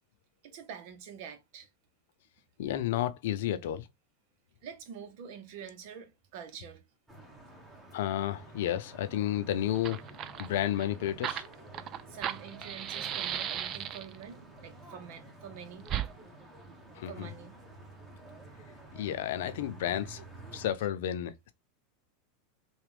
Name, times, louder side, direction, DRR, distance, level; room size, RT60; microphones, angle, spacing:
voice 1, 0.4-1.7 4.6-6.8 11.8-15.9 16.6-16.8 17.1-17.5, right 8 dB, 60° right, 0.9 m, -46 dB
voice 2, 2.6-3.9 7.9-10.0 10.4-11.4 17.0-17.3 18.9-20.2 20.5-21.5, left 12 dB, 75° left, 0.6 m, -31 dB
sound 1, 7.1-20.7, right 2 dB, 15° right, 1.3 m, -50 dB
Fire, 9.4-9.5 9.7-14.2 15.8-16.1, right 10 dB, 40° right, 0.3 m, -36 dB
3.4 x 2.4 x 3.4 m
hypercardioid pair, 110°, 0 cm